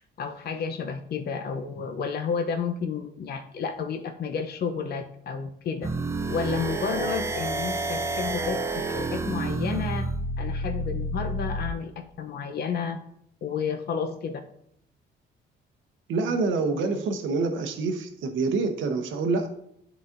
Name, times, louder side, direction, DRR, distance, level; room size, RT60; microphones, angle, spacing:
voice 1, 0.2-5.9 6.3-10.1 10.4-13.0 13.4-14.4, left 6 dB, 55° left, 5 dB, 0.7 m, -31 dB
sound 1, 5.8-11.7, right 2 dB, 15° right, 0.4 m, -29 dB
voice 2, 16.1-19.5, right 3 dB, 80° right, 6 dB, 0.8 m, -26 dB
11.0 x 4.0 x 2.5 m, 0.71 s
cardioid pair, 90°, 20 cm